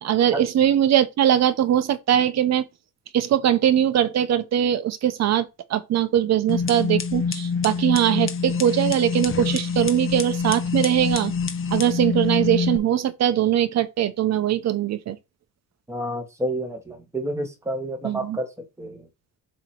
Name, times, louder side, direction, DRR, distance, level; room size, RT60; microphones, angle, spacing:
voice 1, 0.0-2.6 3.1-11.3 11.7-15.2 18.0-18.4, right 10 dB, 50° right, 0.8 m, -21 dB
sound 1, 6.5-12.8, left 5 dB, 40° left, 0.8 m, -26 dB
voice 2, 15.9-18.5 18.8-19.0, right 1 dB, 10° right, 1.4 m, -29 dB
7.4 x 3.0 x 4.6 m
cardioid pair, 155°, 33 cm